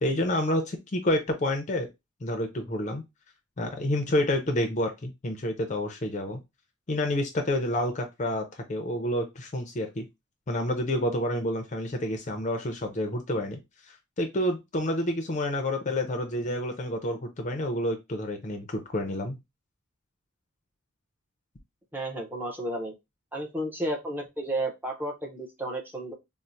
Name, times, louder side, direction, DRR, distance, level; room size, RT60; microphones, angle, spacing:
voice 1, 0.0-1.9 2.2-3.0 3.6-6.4 6.9-10.0 10.5-13.6 13.9-19.4, left 1 dB, 35° left, 5 dB, 0.5 m, -29 dB
voice 2, 21.9-22.9 23.3-26.1, right 1 dB, 10° right, 0 dB, 0.6 m, -32 dB
4.3 x 2.0 x 2.6 m, 0.21 s
head